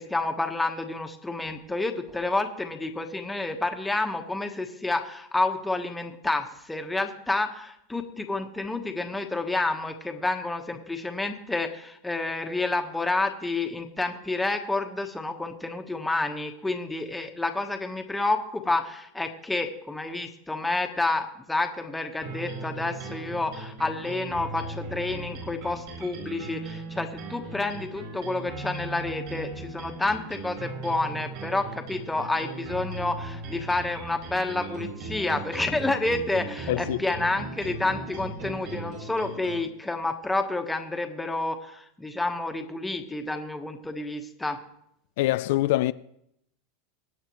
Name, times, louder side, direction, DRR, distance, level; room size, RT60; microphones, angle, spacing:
voice 1, 0.0-44.6, left 2 dB, 5° left, 1.3 m, -29 dB
sound 1, 22.2-39.6, right 3 dB, 60° right, 6.0 m, -38 dB
voice 2, 36.7-37.0 45.2-45.9, left 16 dB, 70° left, 0.3 m, -24 dB
23.5 x 9.1 x 3.1 m
supercardioid pair, 130°, 0 cm